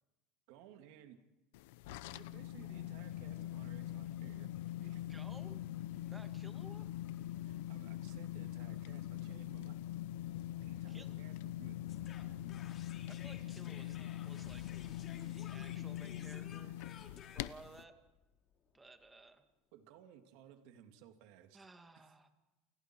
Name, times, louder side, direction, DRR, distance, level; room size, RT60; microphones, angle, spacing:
voice 1, 0.5-1.2 1.9-5.1 7.4-9.8 10.5-11.8 19.7-21.6 21.9-22.0, right 10 dB, 70° right, 6 dB, 2.8 m, -59 dB
sound 1, 1.5-17.8, left 13 dB, 85° left, 0.8 m, -43 dB
sound 2, 2.1-16.4, left 3 dB, 15° left, 3.1 m, -68 dB
voice 2, 5.1-5.6 6.0-6.9 10.9-11.2 13.0-14.7 15.3-16.8 17.3-18.0 18.7-19.4 21.5-22.3, right 3 dB, 10° right, 6 dB, 2.2 m, -57 dB
sound 3, 11.9-19.0, left 7 dB, 35° left, 3.0 m, -56 dB
29.5 x 28.5 x 4.8 m, 1.0 s
cardioid pair, 150°, 0 cm